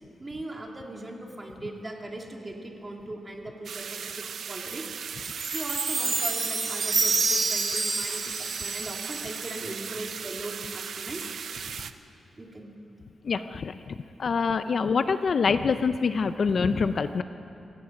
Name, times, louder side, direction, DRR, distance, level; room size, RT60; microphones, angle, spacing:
voice 1, 0.2-4.8 5.4-11.3 12.4-12.7, right 1 dB, 20° right, 1 dB, 2.3 m, -39 dB
sound 1, 3.6-11.9, right 7 dB, 65° right, 0.7 m, -37 dB
Chime, 5.2-9.7, right 4 dB, 40° right, 1.8 m, -28 dB
voice 2, 13.3-13.8 14.2-17.2, left 5 dB, 45° left, 11 dB, 0.5 m, -25 dB
28.0 x 16.0 x 5.9 m, 2.6 s
wide cardioid pair, 145°, 0 cm